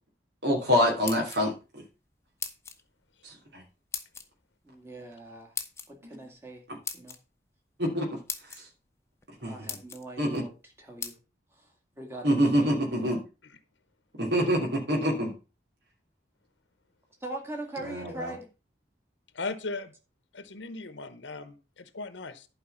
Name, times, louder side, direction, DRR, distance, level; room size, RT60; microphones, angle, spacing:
voice 1, 0.4-1.8 3.2-3.6 6.0-6.1 6.7-6.8 7.8-8.2 8.6-8.7 9.4-9.8 10.2-10.4 12.2-13.2 14.2-15.3 17.8-18.3, equal, 70° right, -1 dB, 3.0 m, -26 dB
sound 1, 0.8-1.7 2.4-2.8 3.9-4.3 5.6-5.9 6.8-7.2 7.9-8.0 8.3-8.6 9.2-9.3 9.7-10.0 11.0-11.2, left 6 dB, 15° left, 0.9 m, -37 dB
voice 2, 4.6-5.5 5.9-6.6 6.9-7.2 9.4-10.5 10.8-11.1 11.6-11.7 12.0-12.9 17.2-18.5, right 2 dB, 15° right, 1 dB, 2.1 m, -41 dB
voice 3, 19.3-19.9 20.3-22.5, left 3 dB, 85° left, 12 dB, 0.9 m, -37 dB
11.5 x 4.9 x 5.5 m, 0.31 s
head